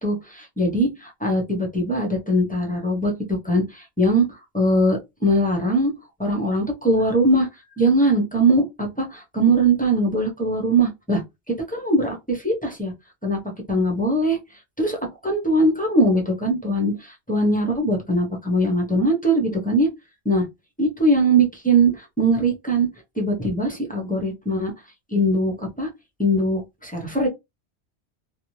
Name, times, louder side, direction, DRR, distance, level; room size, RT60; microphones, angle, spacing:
voice 1, 0.0-5.9 6.2-7.5 7.8-11.2 11.7-12.9 13.2-13.4 13.7-14.4 14.8-15.0 15.2-19.9 20.2-20.4 20.8-22.9 23.2-24.7 25.1-25.9 26.2-27.3, right 1 dB, 10° left, 0.7 m, -21 dB
2.6 x 2.3 x 3.0 m
omnidirectional pair, 1.1 m